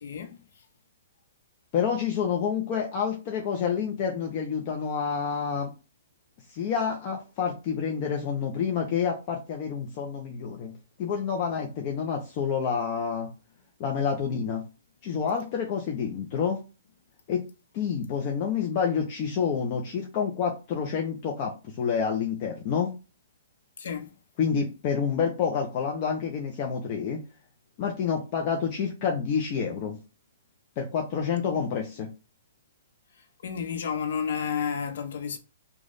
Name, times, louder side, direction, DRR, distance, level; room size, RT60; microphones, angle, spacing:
voice 1, 0.0-0.4 23.8-24.1 31.5-31.6 33.4-35.4, left 7 dB, 70° left, 0.8 m, -31 dB
voice 2, 1.7-5.7 6.5-10.7 11.0-13.3 13.8-14.6 15.0-16.6 17.3-17.5 17.7-22.9 24.4-27.2 27.8-30.0 30.8-32.1, left 6 dB, 35° left, 0.7 m, -28 dB
3.1 x 2.4 x 3.9 m
hypercardioid pair, 150°, 0 cm